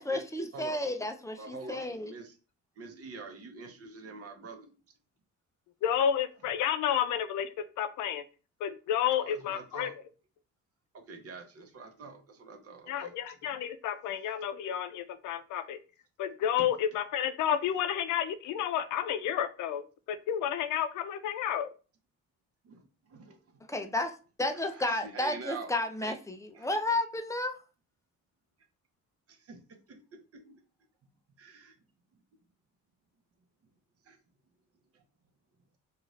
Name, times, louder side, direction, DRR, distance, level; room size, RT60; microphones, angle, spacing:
voice 1, 0.0-2.1 23.7-24.1 24.4-27.6, left 2 dB, 10° left, 0.4 m, -32 dB
voice 2, 1.4-2.4 2.8-4.8 9.1-10.0 10.9-13.1 16.6-16.7 22.6-23.6 24.5-25.7 26.0-26.2 26.5-26.7 29.3-30.6 31.4-31.7 32.1-32.2 34.0-34.2 34.9-35.0, right 4 dB, 50° right, 0.8 m, -46 dB
voice 3, 5.8-8.2 8.6-9.9 12.9-15.8 16.2-21.7, left 9 dB, 80° left, 0.5 m, -31 dB
2.6 x 2.4 x 3.1 m
cardioid pair, 90°, 30 cm